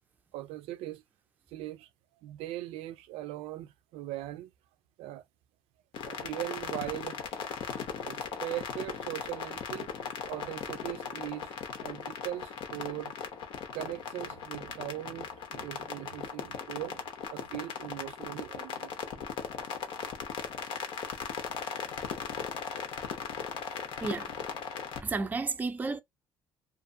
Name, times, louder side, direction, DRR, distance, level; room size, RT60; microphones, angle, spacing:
voice 1, 0.3-1.0 1.5-1.9 2.2-4.5 5.0-5.2 6.0-7.2 8.0-9.9 10.3-11.5 11.8-13.1 13.7-17.0 17.3-19.3, right 15 dB, 80° right, 0.4 m, -40 dB
sound 1, 5.9-25.0, left 7 dB, 65° left, 0.8 m, -38 dB
voice 2, 24.0-24.3 25.0-26.0, right 3 dB, 15° right, 0.4 m, -32 dB
2.4 x 2.4 x 2.6 m
cardioid pair, 115°, 10 cm